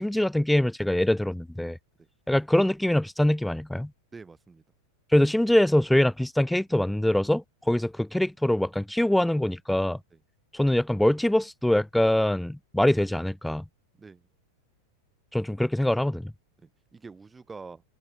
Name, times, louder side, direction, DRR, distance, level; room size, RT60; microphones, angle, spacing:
voice 1, 0.0-1.8 2.3-3.9 5.1-10.0 10.5-13.6 15.3-16.3, left 1 dB, 5° left, 0.4 m, -24 dB
voice 2, 4.1-4.6 10.1-10.2 13.9-14.3 16.6-17.8, right 4 dB, 15° right, 6.3 m, -46 dB
figure-of-eight pair, 90°, 0 cm